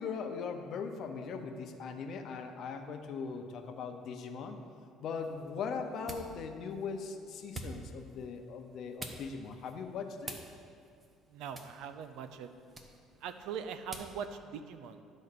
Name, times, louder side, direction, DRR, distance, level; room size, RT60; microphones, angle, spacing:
voice 1, 0.0-4.6 5.0-10.4, left 5 dB, 55° left, 5 dB, 0.8 m, -40 dB
sound 1, 5.1-14.2, right 2 dB, 20° right, 0.9 m, -50 dB
voice 2, 11.3-12.5 13.2-15.1, right 7 dB, 75° right, 9 dB, 0.6 m, -42 dB
12.0 x 4.2 x 6.7 m, 2.3 s
cardioid pair, 135°, 0 cm